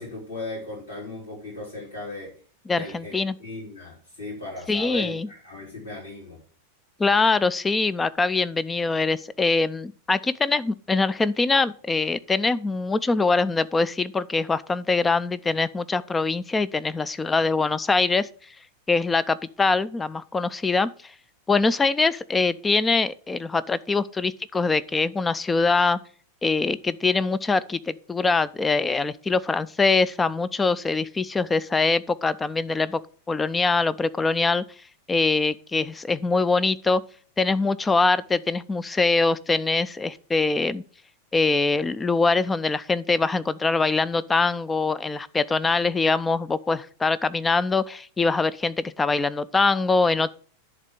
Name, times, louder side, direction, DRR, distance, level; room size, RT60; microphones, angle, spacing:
voice 1, 0.0-2.3 2.8-3.1 3.4-6.4, left 2 dB, 60° left, 4.1 m, -36 dB
voice 2, 2.7-3.4 4.7-5.3 7.0-18.3 18.9-20.9 21.5-26.0 26.4-33.0 33.3-34.6 35.1-37.0 37.4-40.8 41.3-50.3, left 3 dB, 15° left, 0.4 m, -23 dB
11.0 x 3.6 x 6.6 m
figure-of-eight pair, 90°, 0 cm